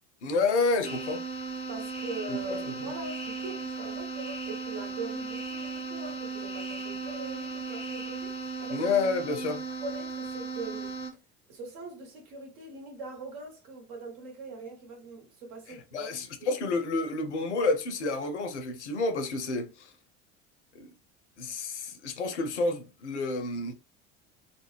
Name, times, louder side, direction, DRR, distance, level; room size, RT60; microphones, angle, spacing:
voice 1, 0.2-1.2 2.3-2.9 8.7-9.6 15.9-19.9 20.7-20.9 21.4-23.7, left 3 dB, 75° left, 0.6 m, -29 dB
sound 1, 0.8-11.1, right 4 dB, 15° left, 0.7 m, -36 dB
voice 2, 1.7-8.9 9.8-10.9 11.5-16.1 16.4-16.6, right 3 dB, 55° right, 1.1 m, -42 dB
2.4 x 2.0 x 3.1 m
figure-of-eight pair, 65°, 35 cm